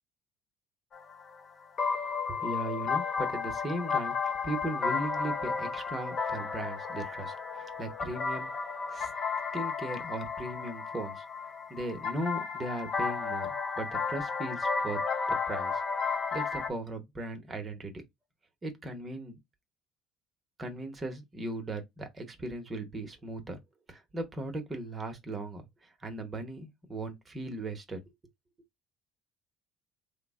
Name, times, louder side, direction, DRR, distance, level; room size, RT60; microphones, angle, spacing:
sound 1, 0.9-16.7, left 5 dB, 40° left, 0.5 m, -33 dB
voice 1, 2.3-8.5 8.9-9.1 9.5-11.2 11.7-15.0 15.5-15.7 16.0-17.9 18.6-19.4 20.6-23.6 23.9-28.0, right 2 dB, 25° right, 0.8 m, -38 dB
3.3 x 2.1 x 3.5 m
cardioid pair, 125°, 0 cm